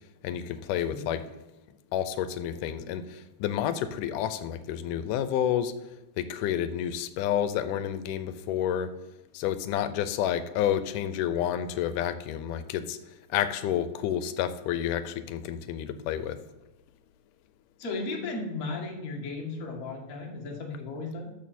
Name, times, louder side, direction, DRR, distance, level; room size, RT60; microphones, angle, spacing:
voice 1, 0.2-1.2 1.9-5.7 6.2-8.9 9.3-13.0 13.3-16.4, left 10 dB, 85° left, 12 dB, 2.2 m, -30 dB
voice 2, 17.8-21.3, left 3 dB, 35° left, 0 dB, 1.5 m, -35 dB
13.0 x 6.6 x 4.2 m, 1.0 s
omnidirectional pair, 3.6 m